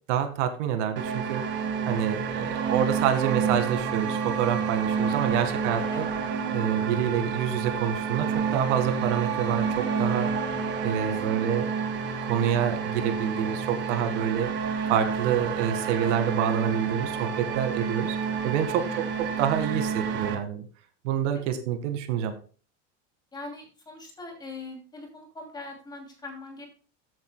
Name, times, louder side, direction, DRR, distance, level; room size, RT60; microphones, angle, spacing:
voice 1, 0.1-1.4 1.9-6.1 6.5-8.3 8.5-10.3 10.8-11.7 12.2-14.5 14.9-18.2 18.4-18.8 19.4-20.6 21.0-22.3, right 9 dB, 75° right, 7 dB, 1.9 m, -27 dB
sound 1, 1.0-20.4, right 6 dB, 30° right, 1.4 m, -29 dB
voice 2, 11.1-11.4 18.7-19.1 23.3-26.7, left 2 dB, 10° left, 1 dB, 2.6 m, -41 dB
14.5 x 7.9 x 2.2 m, 0.38 s
cardioid pair, 180°, 36 cm